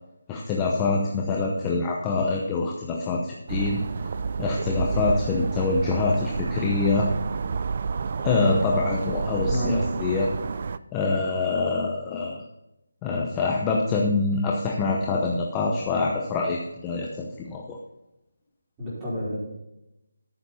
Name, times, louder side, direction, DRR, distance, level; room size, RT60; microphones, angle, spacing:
voice 1, 0.3-3.8 4.0-7.1 8.2-10.3 10.9-12.4 13.0-17.8, left 3 dB, 10° left, -1 dB, 0.8 m, -25 dB
sound 1, 3.5-10.8, right 5 dB, 35° right, 0.3 m, -29 dB
voice 2, 9.5-9.9 18.8-19.4, left 1 dB, 10° right, -8 dB, 4.6 m, -28 dB
13.5 x 7.1 x 4.1 m, 0.90 s
figure-of-eight pair, 175°, 0 cm